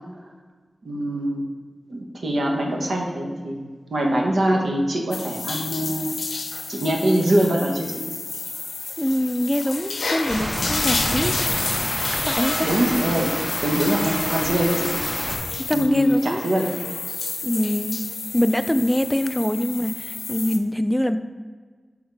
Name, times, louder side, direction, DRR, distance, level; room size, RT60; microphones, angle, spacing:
voice 1, 0.8-1.5 1.9-3.6 3.9-6.1 6.7-8.0 12.6-13.3 13.6-14.9 15.7-16.7, right 1 dB, 75° right, 0 dB, 1.0 m, -23 dB
sound 1, 5.1-20.6, left 4 dB, 85° left, 0.5 m, -30 dB
voice 2, 9.0-11.8 12.2-12.7 15.7-16.4 17.4-18.0 18.3-21.2, left 1 dB, 5° left, 9 dB, 0.3 m, -24 dB
Rain, 10.3-15.4, equal, 30° right, 1.1 m, -28 dB
6.2 x 3.6 x 4.7 m, 1.5 s
wide cardioid pair, 110°, 0 cm